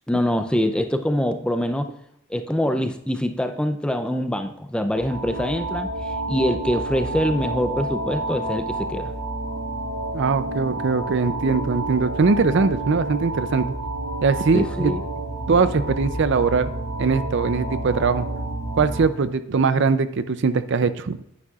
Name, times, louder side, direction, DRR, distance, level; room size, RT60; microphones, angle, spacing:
voice 1, 0.1-1.9 2.3-9.1 14.5-15.0, equal, 5° left, 8 dB, 0.4 m, -24 dB
sound 1, 4.9-19.0, right 2 dB, 80° right, 2.8 m, -29 dB
voice 2, 10.1-13.7 14.2-15.0 15.5-16.7 17.0-18.3 18.8-21.2, right 4 dB, 55° right, 13 dB, 0.5 m, -21 dB
10.0 x 9.6 x 2.4 m, 0.78 s
head